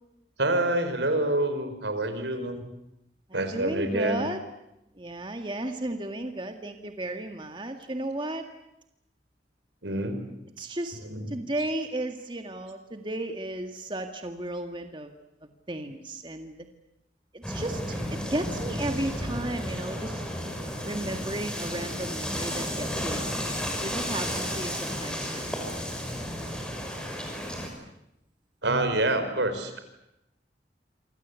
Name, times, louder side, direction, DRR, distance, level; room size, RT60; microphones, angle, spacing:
voice 1, 0.4-2.6 3.3-4.2 9.8-10.4 11.0-11.3 28.6-29.8, right 1 dB, 80° right, 8 dB, 5.1 m, -27 dB
voice 2, 3.3-4.4 5.0-8.4 10.6-11.0 11.3-15.1 15.7-16.5 17.3-20.2 20.8-25.5, right 1 dB, 25° right, 5 dB, 1.9 m, -34 dB
sound 1, 17.4-27.7, equal, 5° left, 6.1 m, -33 dB
28.0 x 25.5 x 8.3 m, 0.85 s
head